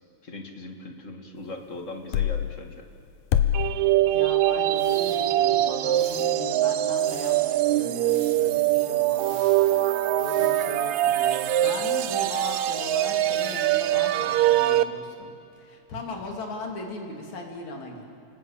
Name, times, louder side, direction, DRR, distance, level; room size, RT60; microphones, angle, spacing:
voice 1, 0.2-2.8, left 2 dB, 30° left, 3 dB, 2.0 m, -39 dB
sound 1, 2.1-2.4 3.3-3.7, left 10 dB, 90° left, 2.6 m, -22 dB
sound 2, 3.5-14.8, right 13 dB, 75° right, 2.0 m, -23 dB
voice 2, 4.1-9.4 10.2-18.0, left 2 dB, 65° left, 1 dB, 4.3 m, -38 dB
sound 3, 4.7-14.0, right 1 dB, 30° right, 6.1 m, -50 dB
30.0 x 20.5 x 8.8 m, 2.5 s
omnidirectional pair, 3.5 m